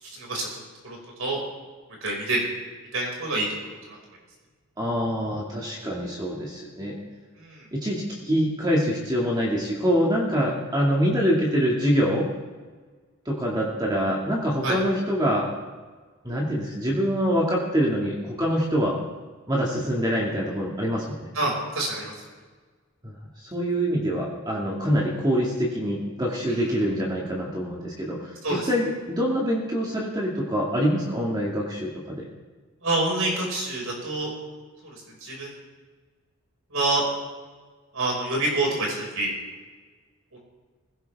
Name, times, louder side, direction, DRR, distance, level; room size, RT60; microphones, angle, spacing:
voice 1, 0.0-0.5 0.8-1.4 2.0-2.5 2.9-4.0 7.4-7.7 14.6-14.8 21.3-22.1 26.5-26.7 28.4-28.7 32.8-34.3 34.8-35.6 36.7-37.0 37.9-39.3 40.3-40.4, right 2 dB, 70° right, -2 dB, 5.6 m, -27 dB
voice 2, 4.8-6.9 7.7-12.3 13.3-15.5 16.2-19.0 19.5-21.3 23.0-23.2 23.5-28.4 28.7-32.2, equal, 20° right, -4 dB, 2.1 m, -25 dB
19.5 x 17.0 x 3.6 m, 1.4 s
head